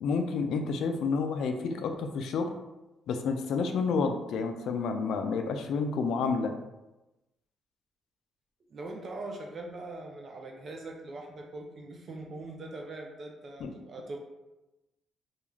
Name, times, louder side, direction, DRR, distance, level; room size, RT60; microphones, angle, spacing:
voice 1, 0.0-2.5 3.1-6.5 13.6-13.7, left 4 dB, 75° left, 6 dB, 0.3 m, -30 dB
voice 2, 8.7-14.2, right 2 dB, 50° right, 1 dB, 0.4 m, -41 dB
2.3 x 2.3 x 3.1 m, 1.0 s
cardioid pair, 90°, 0 cm